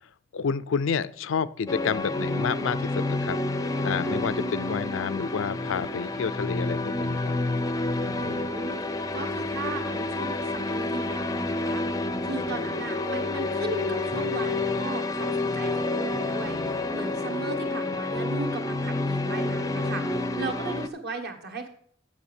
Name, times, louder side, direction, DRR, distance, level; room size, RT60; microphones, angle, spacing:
voice 1, 0.3-3.4 3.8-7.3 8.0-8.5, left 6 dB, 70° left, 16 dB, 0.4 m, -30 dB
sound 1, 1.7-20.9, left 2 dB, 15° left, 0.5 m, -29 dB
voice 2, 4.3-4.8 8.2-8.8 9.1-21.7, right 3 dB, 55° right, 5 dB, 1.5 m, -37 dB
8.1 x 6.3 x 7.0 m, 0.62 s
head